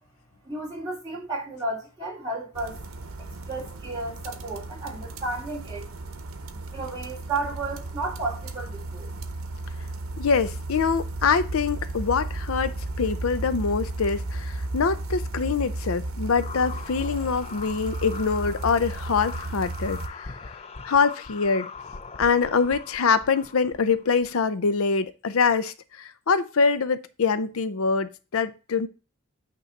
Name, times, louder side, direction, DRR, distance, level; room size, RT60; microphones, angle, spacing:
voice 1, 0.4-2.8 3.2-5.9 6.7-9.2, right 2 dB, 20° right, 2.7 m, -33 dB
sound 1, 2.5-20.1, right 2 dB, 85° right, 0.9 m, -34 dB
voice 2, 10.2-20.4 20.8-21.7 22.2-28.9, left 5 dB, 80° left, 0.6 m, -24 dB
sound 2, 16.3-24.4, left 5 dB, 30° left, 0.5 m, -41 dB
9.0 x 3.0 x 6.4 m
head